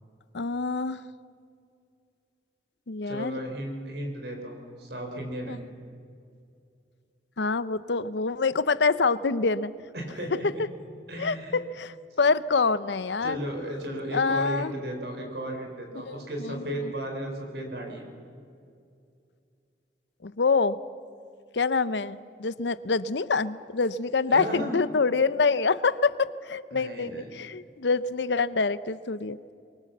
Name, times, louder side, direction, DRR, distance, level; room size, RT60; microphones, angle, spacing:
voice 1, 0.3-1.0 2.9-3.4 5.5-5.6 7.4-9.7 11.2-13.4 14.1-14.7 16.1-16.9 20.2-20.8 21.5-29.5, left 4 dB, 80° left, 15 dB, 0.7 m, -26 dB
voice 2, 3.0-5.6 9.9-10.6 11.1-11.5 13.2-18.1 24.3-24.8 26.7-27.3, right 1 dB, 70° right, 3 dB, 4.5 m, -34 dB
24.0 x 23.0 x 7.3 m, 2.4 s
head